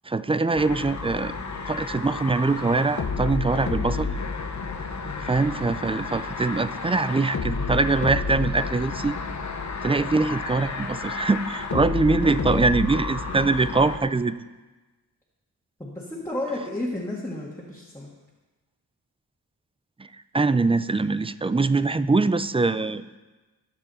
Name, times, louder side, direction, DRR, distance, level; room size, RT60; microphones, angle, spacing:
voice 1, 0.1-1.3 1.7-4.1 5.2-9.2 9.8-14.3 20.3-23.2, right 3 dB, 15° right, 14 dB, 0.4 m, -23 dB
sound 1, 0.5-14.0, left 4 dB, 45° left, 1.1 m, -31 dB
voice 2, 12.2-12.7 15.8-18.1, left 1 dB, 5° left, -5 dB, 1.9 m, -32 dB
20.0 x 7.3 x 4.2 m, 1.2 s
wide cardioid pair, 95°, 38 cm